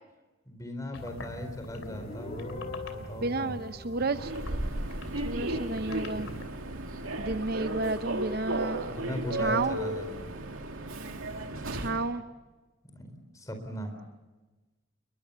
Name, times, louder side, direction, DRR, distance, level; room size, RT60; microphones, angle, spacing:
voice 1, 0.5-3.6 8.9-10.3 12.8-14.0, equal, 15° left, 5 dB, 4.2 m, -39 dB
sound 1, 0.9-6.4, left 1 dB, 80° left, 3.0 m, -44 dB
Guitar, 1.7-5.2, left 2 dB, 30° left, 5.9 m, -44 dB
voice 2, 3.2-4.3 5.2-6.3 7.2-9.0 9.4-9.8 11.7-12.2, right 2 dB, 50° right, 10 dB, 0.7 m, -31 dB
Human voice / Subway metro underground, 4.1-12.1, right 2 dB, 80° right, 2.4 m, -34 dB
29.5 x 22.0 x 6.9 m, 1.2 s
head